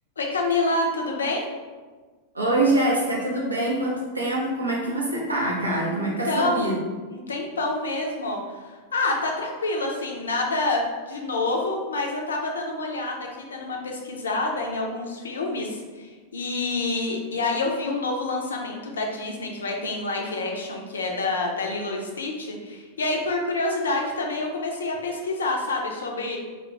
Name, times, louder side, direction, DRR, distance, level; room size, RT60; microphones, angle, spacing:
voice 1, 0.2-1.4 6.0-6.7 7.1-26.4, left 2 dB, 70° left, 1 dB, 0.4 m, -27 dB
voice 2, 2.3-6.8, right 1 dB, 80° right, -4 dB, 0.5 m, -24 dB
2.3 x 2.2 x 3.0 m, 1.4 s
figure-of-eight pair, 90°, 0 cm